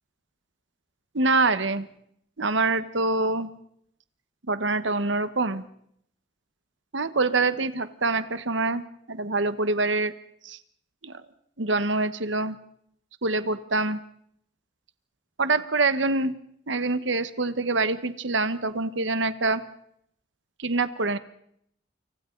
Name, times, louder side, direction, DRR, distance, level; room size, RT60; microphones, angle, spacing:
voice 1, 1.1-1.9 2.4-3.5 4.5-5.6 6.9-8.8 9.1-10.1 10.4-10.6 11.0-11.2 11.6-12.5 13.2-14.0 15.4-16.3 16.7-19.6 20.6-21.2, right 3 dB, 85° right, 12 dB, 1.3 m, -25 dB
29.5 x 26.0 x 4.0 m, 0.69 s
head